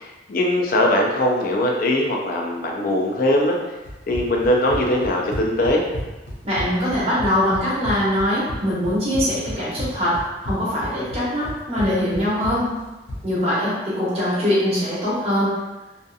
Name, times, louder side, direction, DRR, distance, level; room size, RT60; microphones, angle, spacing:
voice 1, 0.0-3.6 4.1-5.8, left 1 dB, 50° left, 0 dB, 0.4 m, -21 dB
Run, 3.8-13.3, left 1 dB, 90° left, 0.6 m, -33 dB
voice 2, 6.4-12.7 13.2-15.6, equal, 35° right, -8 dB, 0.9 m, -22 dB
2.6 x 2.5 x 2.3 m, 1.1 s
head